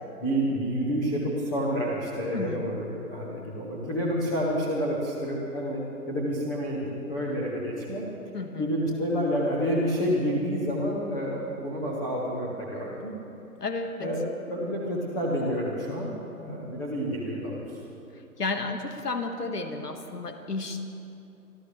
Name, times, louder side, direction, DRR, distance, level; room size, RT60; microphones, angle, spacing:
voice 1, 0.2-5.8 6.1-8.0 8.6-13.1 14.0-16.1 16.4-17.8, equal, 10° left, -5 dB, 0.9 m, -29 dB
voice 2, 2.3-2.7 8.3-8.7 13.6-14.2 18.4-20.8, left 3 dB, 80° left, 6 dB, 1.8 m, -32 dB
27.5 x 13.0 x 3.3 m, 2.8 s
figure-of-eight pair, 150°, 47 cm